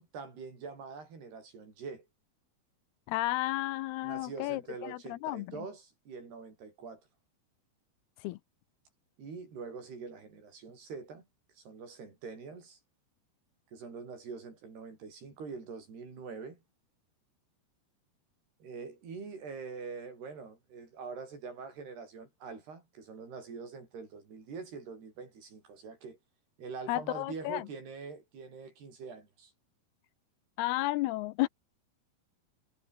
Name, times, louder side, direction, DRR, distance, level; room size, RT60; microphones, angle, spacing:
voice 1, 0.0-2.1 4.0-7.0 9.2-11.3 11.6-12.8 13.7-16.6 18.6-26.2 26.6-29.5, right 5 dB, 85° right, 8.8 m, -44 dB
voice 2, 3.1-5.7 8.2-8.4 26.9-27.7 30.6-31.5, left 18 dB, 85° left, 2.7 m, -32 dB
omnidirectional pair, 4.5 m